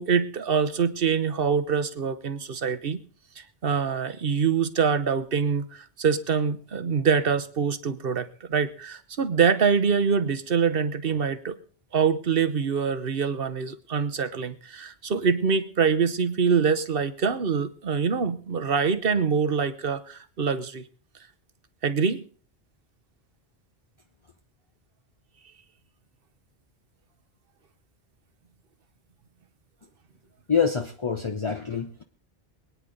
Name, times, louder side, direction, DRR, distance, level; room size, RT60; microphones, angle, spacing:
voice 1, 0.0-3.0 3.4-11.6 11.9-20.8 21.8-22.2, right 6 dB, 60° right, 11 dB, 1.3 m, -25 dB
voice 2, 30.5-32.0, left 6 dB, 30° left, 5 dB, 0.8 m, -26 dB
23.0 x 9.6 x 3.9 m, 0.43 s
omnidirectional pair, 1.1 m